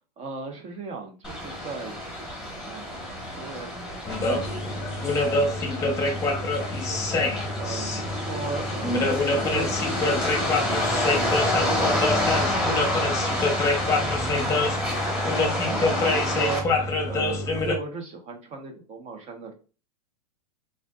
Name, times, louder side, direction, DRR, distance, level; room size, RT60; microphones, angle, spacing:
voice 1, 0.2-2.1 2.3-10.5 10.9-16.6 17.1-19.5, right 4 dB, 35° right, 4 dB, 1.4 m, -39 dB
sound 1, 1.2-16.6, left 1 dB, 5° right, 1.8 m, -29 dB
sound 2, 4.1-17.8, left 2 dB, 15° left, 1.1 m, -26 dB
4.9 x 3.9 x 2.5 m, 0.34 s
hypercardioid pair, 125°, 20 cm